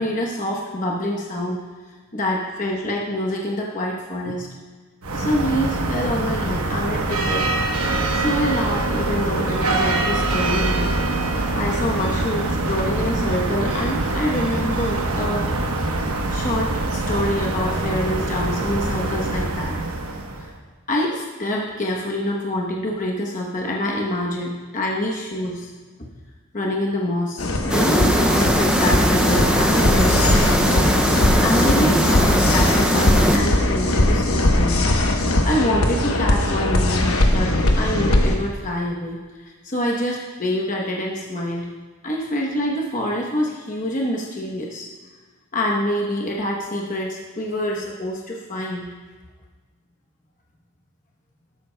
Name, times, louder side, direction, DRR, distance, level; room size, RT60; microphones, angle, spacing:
voice 1, 0.0-1.6 2.1-4.5 5.1-7.4 8.1-11.0 11.5-15.5 16.3-19.8 20.4-20.5 20.9-25.7 26.5-30.8 31.1-34.8 35.1-41.6 42.0-44.9 45.5-48.8, left 1 dB, 35° left, -2 dB, 0.9 m, -26 dB
sound 1, 5.0-20.5, right 2 dB, 80° right, 1.1 m, -24 dB
sound 2, 27.4-38.4, left 1 dB, 70° left, 1.0 m, -20 dB
sound 3, 27.7-33.4, equal, 5° right, 0.4 m, -20 dB
13.0 x 11.5 x 2.2 m, 1.4 s
head